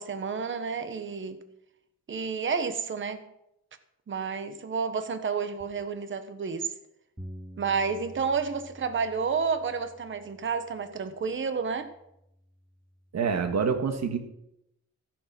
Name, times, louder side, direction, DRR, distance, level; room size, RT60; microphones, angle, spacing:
voice 1, 0.0-1.4 2.1-3.2 4.1-6.7 7.6-11.9, right 5 dB, 40° right, 9 dB, 1.1 m, -30 dB
Bass guitar, 7.2-13.4, equal, 5° right, 1.6 m, -50 dB
voice 2, 13.1-14.2, right 5 dB, 60° right, 7 dB, 1.8 m, -26 dB
14.5 x 9.0 x 5.9 m, 0.82 s
wide cardioid pair, 135°, 30 cm